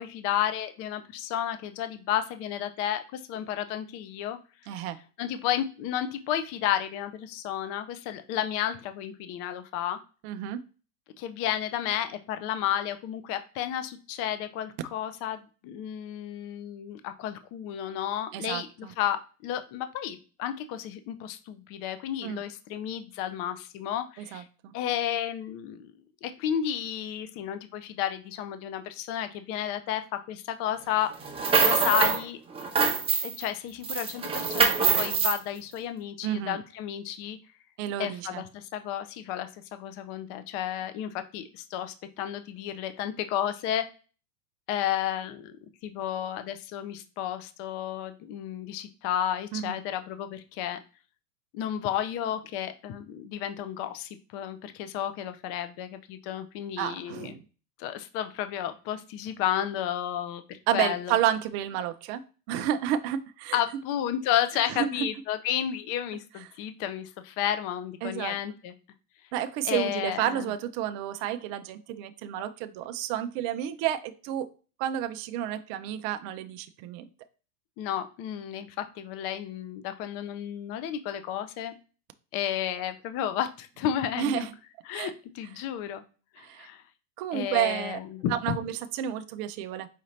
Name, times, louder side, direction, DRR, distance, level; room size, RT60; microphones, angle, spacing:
voice 1, 0.0-4.4 5.2-10.0 11.2-24.4 24.7-25.9 26.2-31.1 31.6-32.4 33.2-37.4 38.0-43.9 44.7-45.6 45.8-50.8 51.5-57.4 57.8-61.2 63.5-68.7 69.6-70.5 77.8-81.7 82.3-84.5 84.9-86.0 86.3-86.8 87.3-88.6, left 10 dB, 30° left, 10 dB, 0.4 m, -32 dB
voice 2, 4.7-5.0 10.2-10.6 18.3-18.9 22.2-22.4 24.2-24.7 36.2-36.6 37.8-38.4 49.5-49.8 56.8-57.4 60.7-62.2 62.5-63.6 64.7-65.1 68.0-68.4 69.3-74.5 74.8-77.1 84.2-84.5 84.9-85.1 86.4-86.7 87.2-88.0 88.3-89.9, right 11 dB, 35° right, 9 dB, 0.4 m, -30 dB
sound 1, 31.2-32.2 32.5-33.5 33.8-35.4, right 5 dB, 10° right, 0.8 m, -24 dB
4.9 x 2.7 x 3.1 m, 0.35 s
supercardioid pair, 125°, 48 cm